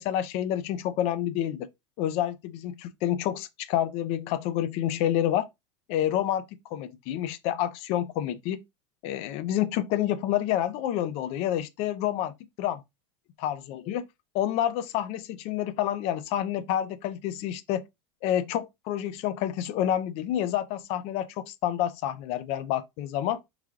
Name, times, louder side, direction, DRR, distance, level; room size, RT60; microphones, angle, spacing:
voice 1, 0.0-1.7 2.0-5.5 5.9-8.6 9.0-12.8 13.4-14.0 14.3-17.8 18.2-23.4, left 11 dB, 45° left, 0.4 m, -28 dB
3.5 x 3.2 x 2.3 m
supercardioid pair, 145°, 15 cm